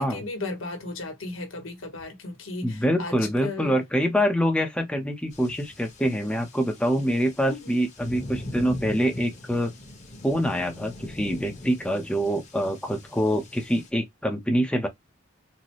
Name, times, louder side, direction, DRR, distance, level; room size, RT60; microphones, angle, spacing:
voice 1, 0.0-3.1 3.4-3.7 7.5-7.8, left 2 dB, 90° left, 1.2 m, -35 dB
voice 2, 2.6-9.7 10.2-14.9, equal, 5° left, 0.7 m, -25 dB
sound 1, 5.3-13.9, left 1 dB, 35° left, 1.1 m, -41 dB
4.0 x 2.2 x 2.9 m
head